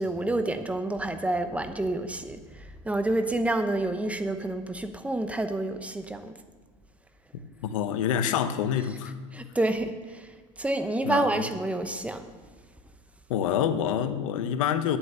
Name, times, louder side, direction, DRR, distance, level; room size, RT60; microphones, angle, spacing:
voice 1, 0.0-6.3 9.3-12.3, right 2 dB, 10° right, 9 dB, 0.9 m, -29 dB
voice 2, 7.6-9.1 11.0-11.5 13.3-15.0, left 9 dB, 80° left, 10 dB, 0.9 m, -27 dB
9.7 x 8.6 x 6.6 m, 1.5 s
supercardioid pair, 105°, 17 cm